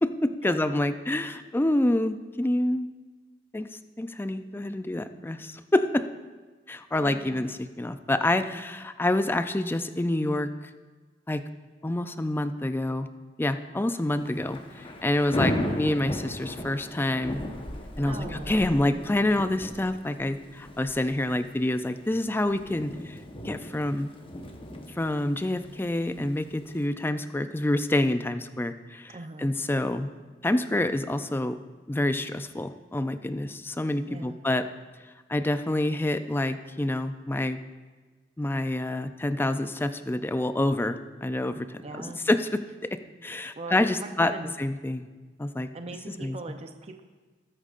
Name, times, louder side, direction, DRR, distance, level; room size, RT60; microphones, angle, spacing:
voice 1, 0.0-2.9 3.5-3.7 4.0-6.1 6.7-10.5 11.3-11.4 11.8-13.1 13.4-17.4 18.0-23.2 23.4-24.1 25.0-30.1 30.4-31.6 31.9-34.7 35.3-37.6 38.4-42.6 42.9-44.3 44.6-45.1 45.4-45.7 46.2-46.4, left 1 dB, 10° left, 10 dB, 0.4 m, -27 dB
voice 2, 7.0-7.5 18.0-18.7 29.1-29.5 34.1-34.4 41.8-42.3 43.6-44.5 45.7-47.0, right 3 dB, 35° right, 5 dB, 0.6 m, -40 dB
Thunder / Rain, 14.2-26.9, equal, 30° left, 1.0 m, -36 dB
19.5 x 8.8 x 2.5 m, 1.3 s
head